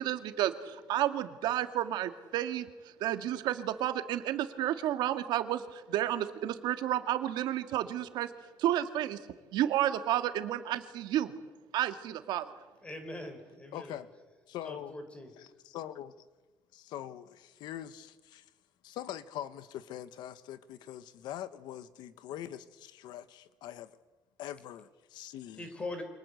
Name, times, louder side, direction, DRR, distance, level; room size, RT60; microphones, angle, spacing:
voice 1, 0.0-8.3 8.6-9.2 9.5-11.3 11.7-12.5, right 12 dB, 75° right, 8 dB, 2.0 m, -31 dB
voice 2, 12.8-14.0 14.6-15.3 25.6-26.0, left 2 dB, 15° left, 8 dB, 4.0 m, -41 dB
voice 3, 13.7-14.1 14.5-14.9 15.4-16.3 16.7-18.4 18.8-23.9 24.4-25.7, left 11 dB, 75° left, 13 dB, 1.3 m, -43 dB
28.5 x 26.0 x 8.0 m, 1.2 s
cardioid pair, 165°, 8 cm